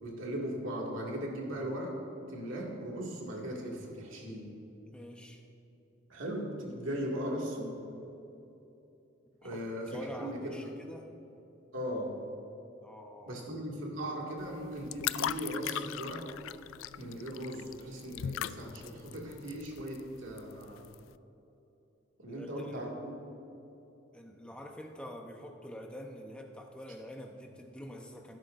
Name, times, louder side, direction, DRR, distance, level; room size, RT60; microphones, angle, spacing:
voice 1, 0.0-2.0 2.3-4.6 6.1-7.8 9.4-10.5 11.7-12.2 13.3-16.3 17.0-20.8 22.2-23.2, equal, 85° right, -2 dB, 2.1 m, -38 dB
voice 2, 4.9-5.4 7.8-8.0 9.4-9.6 9.9-11.1 12.8-13.4 22.3-22.9 24.1-28.4, equal, 5° left, 2 dB, 0.8 m, -46 dB
sound 1, 14.4-21.1, left 11 dB, 85° left, 0.3 m, -39 dB
17.0 x 10.5 x 2.6 m, 3.0 s
head